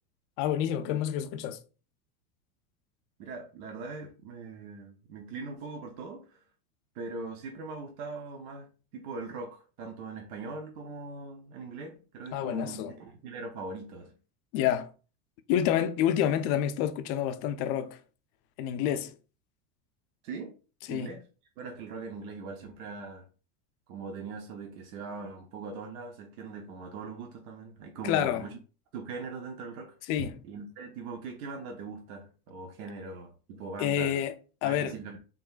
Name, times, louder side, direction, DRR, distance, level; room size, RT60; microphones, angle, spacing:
voice 1, 0.4-1.6 12.3-12.9 14.5-14.9 15.5-18.0 18.6-19.1 20.9-21.1 28.0-28.5 30.1-30.4 33.8-34.3 34.6-35.0, left 10 dB, 40° left, 0.4 m, -28 dB
voice 2, 3.2-6.4 6.9-14.1 20.2-20.5 20.9-21.2 21.6-23.3 23.9-28.5 28.9-29.9 30.4-34.2 34.6-35.2, right 4 dB, 75° right, 0.9 m, -41 dB
3.8 x 3.6 x 2.4 m
supercardioid pair, 130°, 44 cm